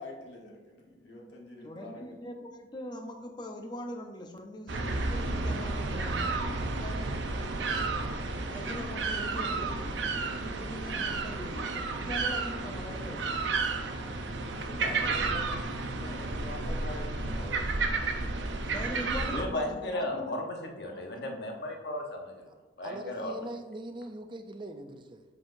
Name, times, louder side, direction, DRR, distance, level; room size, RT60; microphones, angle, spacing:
voice 1, 0.0-2.2 14.6-15.6 16.0-17.7, left 1 dB, 85° left, 1.3 m, -45 dB
voice 2, 1.6-7.8 8.5-10.0 10.2-13.5 14.8-15.2 18.6-20.4 20.8-21.3, left 1 dB, 25° left, 0.6 m, -42 dB
sound 1, 4.7-19.4, right 3 dB, 90° right, 0.7 m, -32 dB
voice 3, 19.3-22.3 22.8-23.3, left 1 dB, 60° left, 1.0 m, -35 dB
voice 4, 22.8-25.2, right 1 dB, 25° right, 0.5 m, -42 dB
7.5 x 5.6 x 2.6 m
head